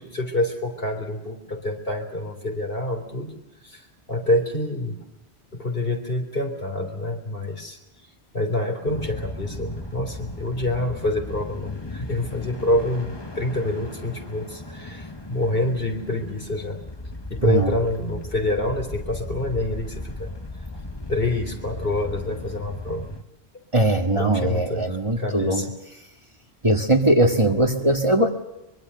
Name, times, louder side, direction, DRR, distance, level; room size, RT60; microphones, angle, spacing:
voice 1, 0.0-3.3 3.6-5.0 5.5-7.8 8.3-16.8 17.3-20.3 21.1-23.0 24.2-25.7, left 1 dB, 55° left, 4 dB, 3.7 m, -27 dB
sound 1, 8.9-23.2, left 2 dB, 25° left, 1.4 m, -37 dB
voice 2, 23.7-25.7 26.6-28.3, right 1 dB, 25° right, 4 dB, 1.9 m, -20 dB
24.0 x 23.5 x 6.9 m, 0.93 s
omnidirectional pair, 1.1 m